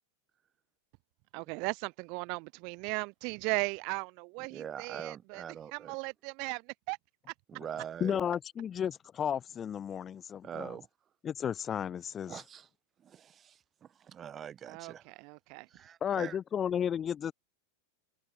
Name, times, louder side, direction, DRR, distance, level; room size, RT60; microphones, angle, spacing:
voice 1, 1.3-5.4 5.7-6.6 6.9-7.0 14.7-15.7, right 33 dB, 45° right, 0.5 m, -37 dB
voice 2, 4.5-6.0 7.5-8.2 10.4-10.9 12.3-12.7 13.0-15.0 15.7-16.4, right 9 dB, 25° right, 1.3 m, -43 dB
voice 3, 8.0-10.8 11.2-12.4 16.0-17.3, left 8 dB, 25° left, 0.6 m, -33 dB
open air
figure-of-eight pair, 90°, 0 cm